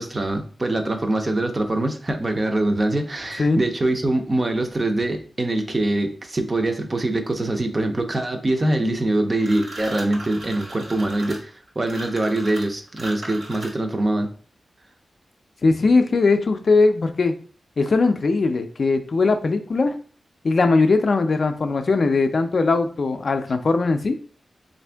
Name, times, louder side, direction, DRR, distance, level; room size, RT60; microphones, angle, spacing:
voice 1, 0.0-14.3, right 2 dB, 25° right, 5 dB, 0.5 m, -23 dB
sound 1, 9.4-14.0, right 1 dB, 60° right, 1.0 m, -37 dB
voice 2, 15.6-17.3 17.8-20.0 20.4-24.1, left 3 dB, 50° left, 7 dB, 0.4 m, -20 dB
3.5 x 2.5 x 3.3 m, 0.42 s
wide cardioid pair, 135°, 0 cm